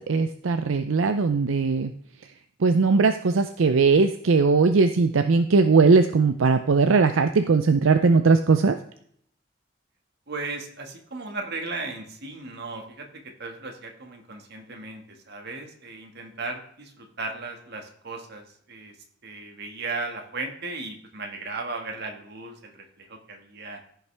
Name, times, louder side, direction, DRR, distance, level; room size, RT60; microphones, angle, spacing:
voice 1, 0.1-1.9 2.6-8.8, right 4 dB, 80° right, 8 dB, 0.5 m, -19 dB
voice 2, 10.3-13.1 13.4-18.9 19.2-23.8, right 3 dB, 55° right, 3 dB, 1.8 m, -36 dB
15.0 x 5.9 x 3.4 m, 0.65 s
head